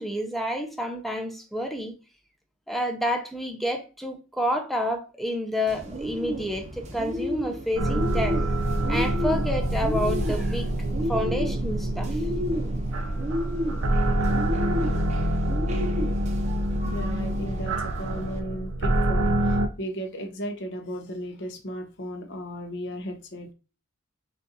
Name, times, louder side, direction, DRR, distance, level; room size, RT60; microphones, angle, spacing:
voice 1, 0.0-1.9 2.7-8.5 8.9-10.7 11.1-12.2, equal, ahead, 0.6 m, -29 dB
Bird, 5.7-18.4, left 1 dB, 30° right, 0.8 m, -33 dB
sound 1, 7.8-19.7, right 1 dB, 75° right, 0.6 m, -26 dB
voice 2, 16.8-23.5, equal, 55° left, 0.9 m, -35 dB
5.9 x 2.5 x 2.7 m
head